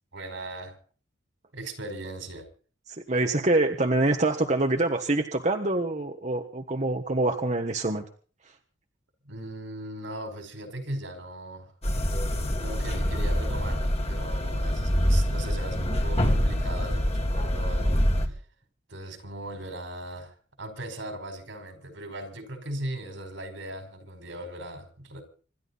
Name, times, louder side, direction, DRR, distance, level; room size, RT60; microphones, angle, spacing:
voice 1, 0.1-0.8 1.5-2.5 9.2-11.7 12.4-18.0 18.9-25.2, right 1 dB, 80° right, 4.9 m, -38 dB
voice 2, 2.9-8.0, right 2 dB, 35° right, 1.4 m, -25 dB
sound 1, 11.8-18.3, equal, 35° left, 2.5 m, -25 dB
26.0 x 12.0 x 4.1 m
head